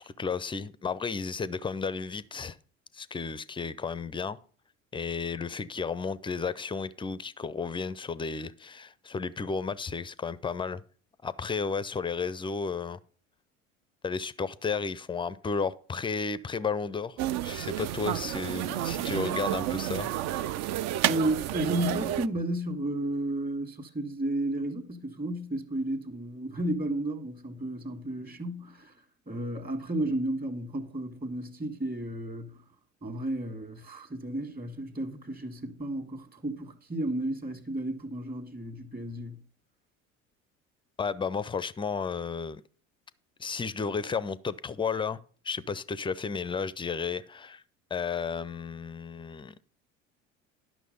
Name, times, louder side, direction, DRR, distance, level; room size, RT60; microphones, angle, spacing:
voice 1, 0.0-2.6 2.9-4.4 4.9-10.8 11.2-13.0 14.0-20.1 41.0-42.6 43.4-45.2 45.4-47.6 47.9-49.6, left 5 dB, 15° left, 0.5 m, -33 dB
sound 1, 17.2-22.3, right 13 dB, 45° right, 0.5 m, -30 dB
voice 2, 21.0-28.9 29.3-32.6 33.0-39.4, right 1 dB, 25° right, 1.7 m, -33 dB
11.0 x 6.1 x 5.2 m
hypercardioid pair, 70°, 39 cm